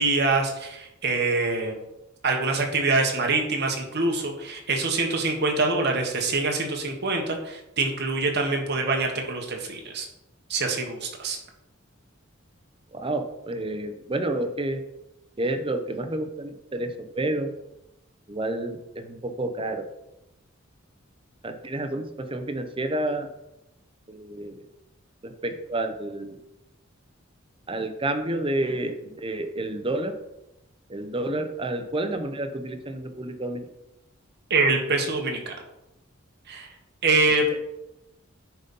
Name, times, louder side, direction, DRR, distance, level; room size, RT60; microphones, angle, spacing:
voice 1, 0.0-1.8 2.2-10.1 10.5-11.4 34.5-35.5 36.5-36.7 37.0-37.6, right 3 dB, 55° right, 2 dB, 1.4 m, -25 dB
voice 2, 12.9-14.8 15.4-17.5 18.3-19.8 21.4-23.3 24.1-24.6 25.2-26.4 27.7-30.1 30.9-33.7, right 1 dB, 25° right, 6 dB, 0.8 m, -29 dB
9.0 x 4.1 x 5.4 m, 0.91 s
head